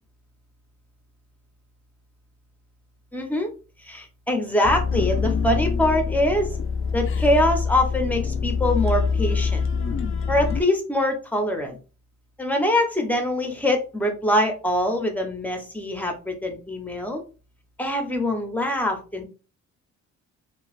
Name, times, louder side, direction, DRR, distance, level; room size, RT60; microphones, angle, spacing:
voice 1, 3.1-3.5 3.8-6.6 6.9-9.7 10.3-11.8 12.4-17.2 17.8-19.3, left 1 dB, 5° left, 3 dB, 0.8 m, -24 dB
sound 1, 4.6-10.6, left 5 dB, 45° left, 0.5 m, -25 dB
3.0 x 2.4 x 2.4 m, 0.33 s
cardioid pair, 90°, 30 cm